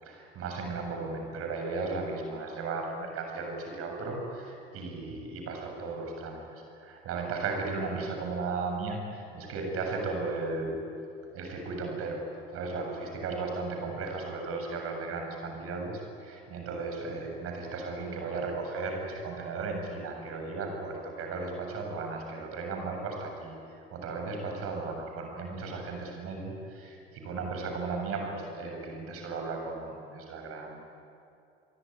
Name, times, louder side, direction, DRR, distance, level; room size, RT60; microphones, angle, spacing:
voice 1, 0.0-10.8 11.3-30.9, right 3 dB, 45° right, 2 dB, 7.6 m, -35 dB
26.5 x 23.5 x 9.6 m, 2.6 s
figure-of-eight pair, 65°, 31 cm